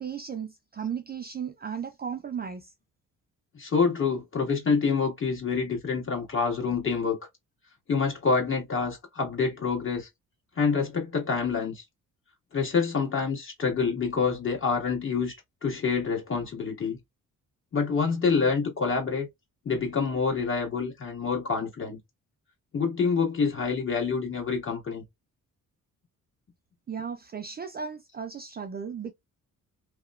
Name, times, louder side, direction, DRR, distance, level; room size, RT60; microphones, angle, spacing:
voice 1, 0.0-2.7 26.9-29.1, right 7 dB, 30° right, 0.3 m, -35 dB
voice 2, 3.5-7.2 7.9-10.1 10.5-11.8 12.5-17.0 17.7-19.3 19.6-22.0 22.7-25.0, left 5 dB, 35° left, 1.6 m, -27 dB
2.8 x 2.1 x 2.3 m
cardioid pair, 100°, 33 cm